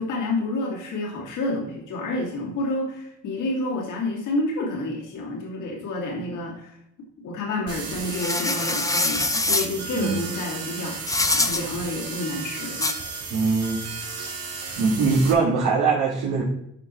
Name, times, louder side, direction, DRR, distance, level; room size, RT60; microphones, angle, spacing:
voice 1, 0.0-6.8 7.2-12.9, left 2 dB, 85° left, -2 dB, 2.6 m, -29 dB
sound 1, 7.7-15.3, right 4 dB, 55° right, 2.6 m, -34 dB
sound 2, 8.1-9.7 11.1-11.6 12.8-12.9, left 2 dB, 10° left, 0.7 m, -24 dB
voice 2, 10.0-10.3 13.3-13.8 14.8-16.4, right 4 dB, 80° right, -4 dB, 1.9 m, -22 dB
12.5 x 4.7 x 3.2 m, 0.79 s
cardioid pair, 90°, 30 cm